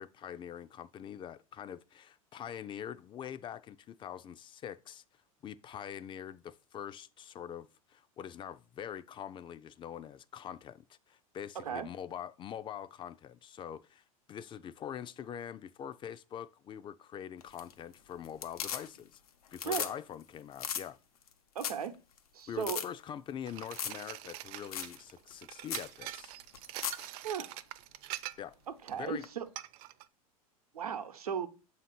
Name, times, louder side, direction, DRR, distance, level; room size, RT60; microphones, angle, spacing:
voice 1, 0.0-5.0 5.4-19.2 19.5-21.0 22.5-26.3 28.4-28.5 28.9-29.3, left 9 dB, 25° left, 0.4 m, -44 dB
sound 1, 17.4-17.9 18.2-19.2 19.5-19.9 20.2-20.3 20.6-20.8 21.3-21.4 21.6-21.9 22.2-22.3 22.6-22.9 23.7-24.0 24.3-24.4 24.7-25.0 25.3-25.4 25.7-25.9 26.5-27.1 29.2-29.3, left 8 dB, 80° left, 0.9 m, -37 dB
voice 2, 21.5-21.9 22.3-22.8 27.2-27.6 28.7-29.5 30.7-31.5, right 7 dB, 90° right, 0.8 m, -36 dB
sound 2, 23.5-28.5 28.9-29.1 29.6-30.1, right 14 dB, 55° right, 0.5 m, -44 dB
7.3 x 2.8 x 5.8 m
hypercardioid pair, 100°, 19 cm